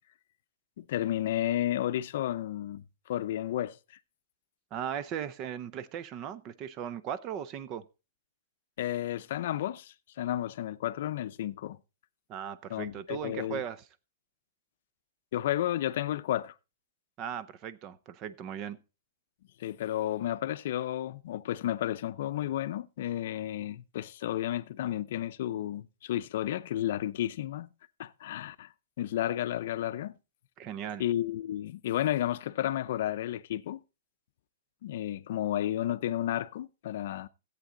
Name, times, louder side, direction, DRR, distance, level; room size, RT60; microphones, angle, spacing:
voice 1, 0.8-3.8 8.8-11.8 12.7-13.6 15.3-16.5 19.6-27.7 28.0-28.7 29.0-30.1 31.0-33.8 34.8-37.3, left 12 dB, 55° left, 0.6 m, -32 dB
voice 2, 4.7-7.8 12.3-13.8 17.2-18.8 30.6-31.0, right 9 dB, 25° right, 0.6 m, -37 dB
14.5 x 8.3 x 3.8 m
hypercardioid pair, 165°, 0 cm